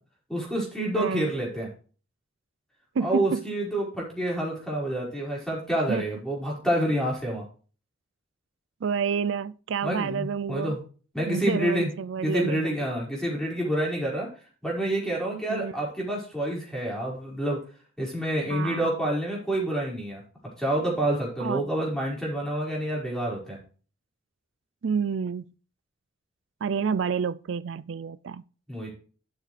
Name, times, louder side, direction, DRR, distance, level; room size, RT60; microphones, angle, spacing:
voice 1, 0.3-1.7 3.0-7.4 9.8-10.8 11.1-11.9 12.2-14.3 14.6-17.6 18.0-20.2 20.6-23.6 28.7-28.9, right 1 dB, 5° left, 5.1 m, -28 dB
voice 2, 0.9-1.3 3.0-3.4 5.9-6.0 8.8-10.8 11.3-12.7 15.5-15.8 18.5-18.9 21.4-21.6 24.8-25.4 26.6-28.4, right 6 dB, 75° right, 0.4 m, -29 dB
12.0 x 9.0 x 3.3 m
head